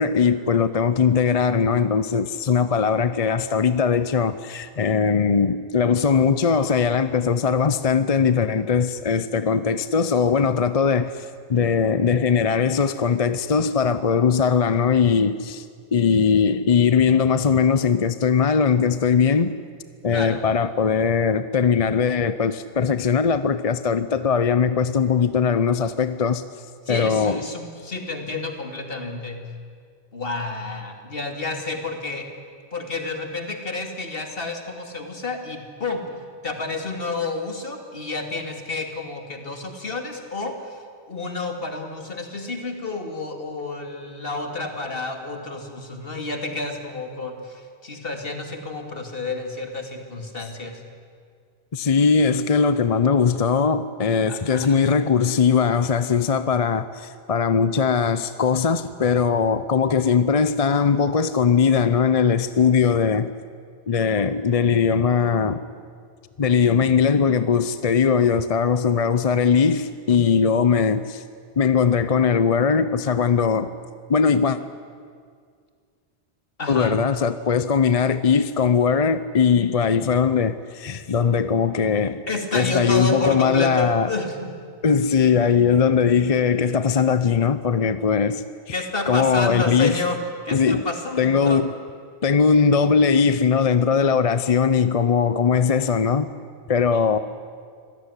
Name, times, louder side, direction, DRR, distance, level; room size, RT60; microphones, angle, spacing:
voice 1, 0.0-15.6 15.9-19.6 20.0-26.4 26.9-27.4 51.7-63.3 63.9-65.6 66.4-71.2 71.6-73.7 74.1-74.6 76.7-82.2 82.5-84.1 84.8-90.0 90.5-90.9 91.2-91.7 92.2-96.3 96.7-97.2, left 6 dB, 40° left, 0.7 m, -20 dB
voice 2, 20.1-20.4 26.9-29.4 30.1-32.3 32.7-36.1 36.4-40.8 41.1-50.8 54.3-54.8 70.1-70.3 76.6-77.0 82.3-84.5 88.7-90.2 90.4-91.6 96.9-97.1, left 3 dB, 65° left, 2.7 m, -30 dB
25.0 x 17.0 x 9.8 m
omnidirectional pair, 1.1 m